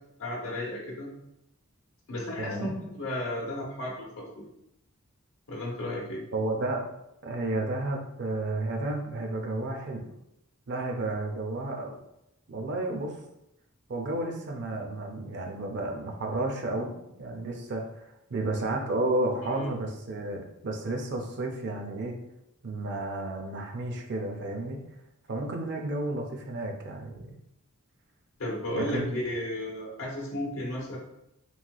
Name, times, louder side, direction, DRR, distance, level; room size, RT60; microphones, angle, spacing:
voice 1, 0.2-1.1 2.1-2.7 2.9-4.5 5.5-6.2 19.4-19.7 28.4-31.0, left 1 dB, 65° left, -4 dB, 0.9 m, -34 dB
voice 2, 2.4-2.7 6.3-6.8 7.2-10.0 10.7-12.0 12.5-13.2 13.9-16.9 17.2-18.0 18.3-22.2 22.6-24.8 25.3-27.3 28.7-29.2, right 2 dB, 55° right, 2 dB, 0.5 m, -32 dB
3.1 x 2.8 x 2.3 m, 0.83 s
head